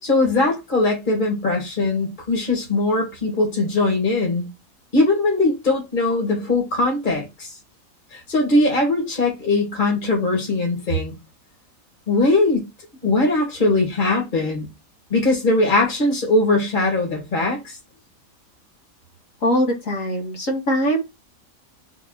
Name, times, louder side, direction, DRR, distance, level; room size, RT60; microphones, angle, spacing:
voice 1, 0.0-4.5 4.9-7.5 8.1-11.1 12.1-12.7 13.0-14.7 15.1-17.8, left 2 dB, 35° left, 2.5 m, -20 dB
voice 2, 19.4-21.0, equal, 65° left, 2.5 m, -21 dB
4.2 x 4.1 x 5.6 m
omnidirectional pair, 1.5 m